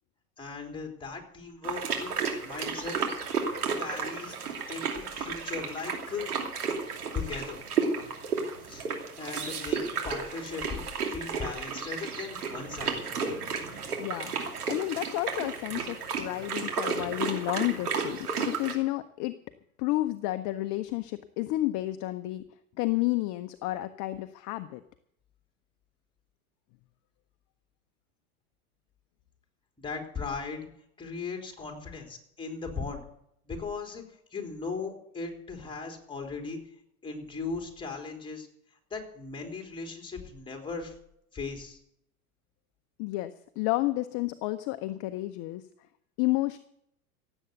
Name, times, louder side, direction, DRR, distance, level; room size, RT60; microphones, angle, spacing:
voice 1, 0.4-2.1 2.4-3.0 3.8-4.3 4.7-6.3 7.1-7.6 8.6-8.9 9.2-13.1 29.8-30.7 31.0-33.0 33.5-34.0 34.3-36.6 37.0-38.5 38.9-40.9 41.3-41.8, left 4 dB, 10° left, 2 dB, 3.7 m, -38 dB
sound 1, 1.6-18.7, right 5 dB, 75° right, 2.9 m, -33 dB
voice 2, 14.0-14.3 14.6-19.3 19.8-22.4 22.8-24.8 43.0-45.6 46.2-46.6, left 17 dB, 40° left, 10 dB, 0.8 m, -31 dB
16.5 x 8.1 x 8.1 m, 0.75 s
hypercardioid pair, 90°, 45 cm